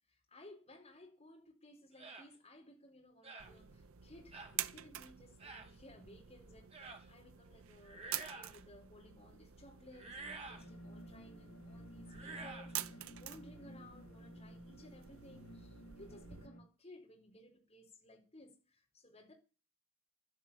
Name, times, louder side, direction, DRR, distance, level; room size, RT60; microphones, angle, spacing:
voice 1, 0.1-8.1 8.4-19.3, left 1 dB, 30° left, 4.3 m, -59 dB
sound 1, 2.0-2.3 3.2-3.5 4.3-4.6 5.4-5.7 6.7-7.0 7.8-8.6 9.9-10.7 12.1-12.7, right 3 dB, 25° right, 2.5 m, -49 dB
sound 2, 3.4-16.5, right 11 dB, 70° right, 0.8 m, -48 dB
sound 3, 10.5-16.6, equal, 90° left, 3.3 m, -54 dB
12.0 x 10.5 x 8.7 m
head